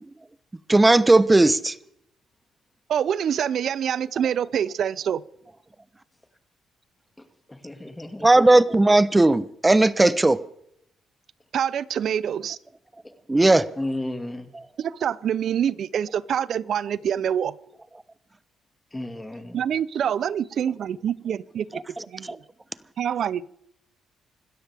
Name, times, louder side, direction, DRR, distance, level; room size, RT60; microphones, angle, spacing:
voice 1, 0.7-1.7 8.2-10.4 13.3-13.6, right 2 dB, 15° right, 0.9 m, -17 dB
voice 2, 2.9-5.2 11.5-12.6 14.8-17.5 19.5-21.8 22.1-22.4 23.0-23.5, right 9 dB, 65° right, 0.6 m, -26 dB
voice 3, 7.5-8.3 13.8-14.5 18.9-19.6, left 1 dB, 10° left, 2.0 m, -33 dB
26.5 x 13.0 x 3.5 m
cardioid pair, 90°, 0 cm